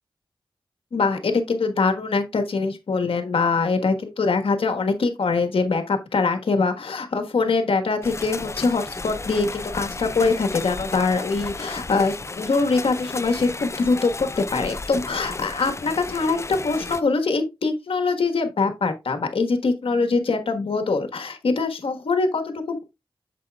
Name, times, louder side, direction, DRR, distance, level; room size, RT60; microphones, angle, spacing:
voice 1, 0.9-22.8, left 4 dB, 85° left, 1.4 m, -23 dB
sound 1, 8.0-17.0, left 3 dB, 30° left, 0.5 m, -33 dB
8.3 x 7.2 x 2.4 m
wide cardioid pair, 70°, 9 cm